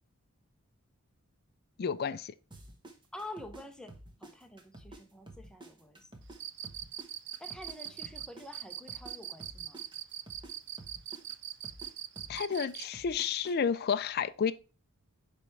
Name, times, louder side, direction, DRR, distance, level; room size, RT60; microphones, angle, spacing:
voice 1, 1.8-2.3 12.3-14.5, left 6 dB, 45° left, 0.4 m, -31 dB
sound 1, 2.5-5.0 5.3-9.1 9.4-13.5, right 1 dB, 20° right, 1.1 m, -50 dB
voice 2, 3.1-3.9 4.2-6.2 7.4-9.8, left 1 dB, 5° left, 0.8 m, -48 dB
Cricket, 6.3-12.9, right 11 dB, 55° right, 0.5 m, -41 dB
9.8 x 3.4 x 3.3 m
head